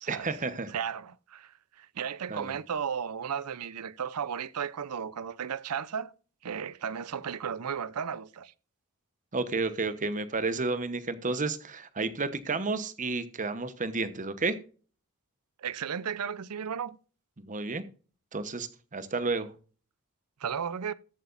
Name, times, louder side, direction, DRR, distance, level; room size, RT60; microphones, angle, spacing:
voice 1, 0.1-0.7 2.3-2.5 9.3-14.5 17.4-17.8 18.3-19.5, right 3 dB, 35° right, 1.0 m, -31 dB
voice 2, 0.7-6.1 6.4-8.5 15.6-17.0 20.4-20.9, right 7 dB, 85° right, 0.6 m, -34 dB
14.0 x 8.3 x 2.5 m
head